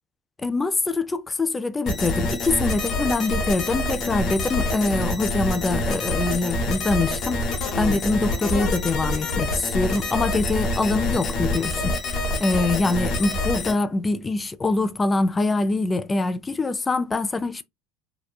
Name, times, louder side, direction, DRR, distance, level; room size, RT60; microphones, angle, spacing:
voice 1, 0.4-7.5 7.8-12.0 12.4-17.6, left 3 dB, 15° left, 0.3 m, -24 dB
sound 1, 1.9-13.7, left 2 dB, 45° left, 0.9 m, -26 dB
2.8 x 2.1 x 2.2 m
supercardioid pair, 110°, 0 cm